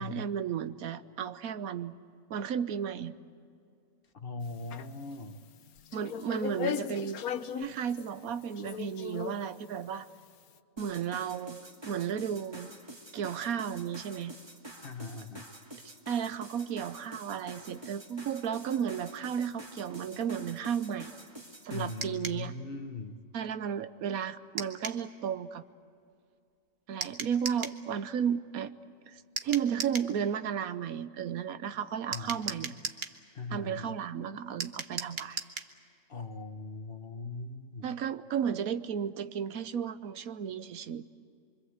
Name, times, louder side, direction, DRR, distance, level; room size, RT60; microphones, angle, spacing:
voice 1, 0.0-1.9 2.3-3.1 5.9-7.2 7.6-10.1 10.8-11.6 11.9-12.7 13.1-14.3 15.8-21.1 21.6-22.5 23.3-25.6 26.9-28.7 29.1-32.7 33.5-35.4 37.8-41.0, right 8 dB, 85° right, 12 dB, 1.3 m, -34 dB
voice 2, 4.1-5.4 14.8-15.5 21.7-23.2 32.1-32.7 33.3-34.0 36.1-37.9, left 3 dB, 45° left, 7 dB, 1.3 m, -40 dB
sound 1, 4.5-5.1 5.8-8.1 8.6-9.4, left 8 dB, 85° left, 1.3 m, -37 dB
sound 2, 10.8-22.1, right 1 dB, 20° right, 1.9 m, -48 dB
sound 3, 22.0-22.4 24.6-25.0 27.0-27.8 29.4-30.1 32.1-33.2 34.6-35.7, right 5 dB, 45° right, 1.3 m, -37 dB
25.5 x 25.0 x 8.1 m, 2.4 s
omnidirectional pair, 1.5 m